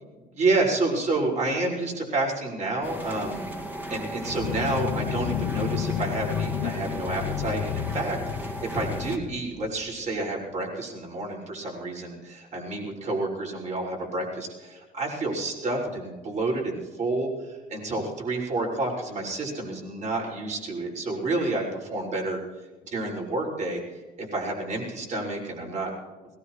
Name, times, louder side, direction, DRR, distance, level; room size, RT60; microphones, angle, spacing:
voice 1, 0.3-3.5 3.9-22.4 22.9-23.8 24.2-25.9, right 2 dB, 45° right, -2 dB, 6.0 m, -29 dB
sound 1, 2.8-9.2, right 1 dB, 10° right, 2.1 m, -36 dB
sound 2, 4.2-10.2, left 11 dB, 90° left, 0.8 m, -32 dB
20.5 x 19.5 x 3.3 m, 1.3 s
cardioid pair, 110°, 17 cm